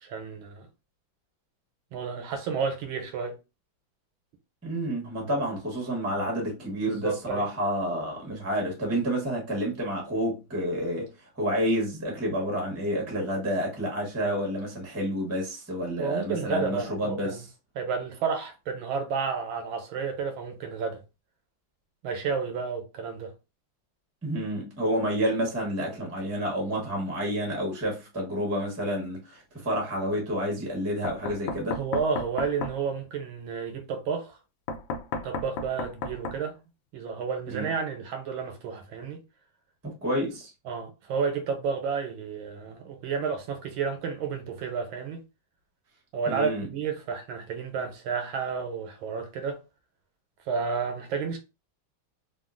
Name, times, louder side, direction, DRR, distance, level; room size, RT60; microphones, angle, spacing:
voice 1, 0.0-0.7 1.9-3.3 6.9-7.5 16.0-17.4 17.7-21.0 22.0-23.3 31.7-34.4 35.2-36.6 36.9-39.2 40.6-45.2 46.1-49.6 50.5-51.4, right 5 dB, 80° right, 1.5 m, -31 dB
voice 2, 4.6-17.4 24.2-31.8 37.5-37.7 39.8-40.5 46.3-46.7, equal, 15° right, 0.6 m, -29 dB
Knock, 31.0-32.8 34.7-36.4, left 3 dB, 75° left, 1.3 m, -33 dB
3.6 x 2.4 x 2.4 m
omnidirectional pair, 2.2 m